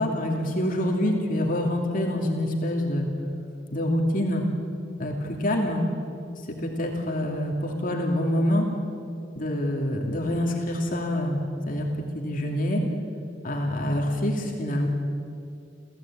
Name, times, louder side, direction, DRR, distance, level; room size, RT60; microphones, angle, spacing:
voice 1, 0.0-3.1 3.7-4.4 5.0-5.8 6.5-8.7 9.3-11.9 12.1-12.8 13.4-14.9, left 1 dB, 45° left, 1 dB, 2.7 m, -26 dB
29.0 x 15.5 x 8.8 m, 2.5 s
head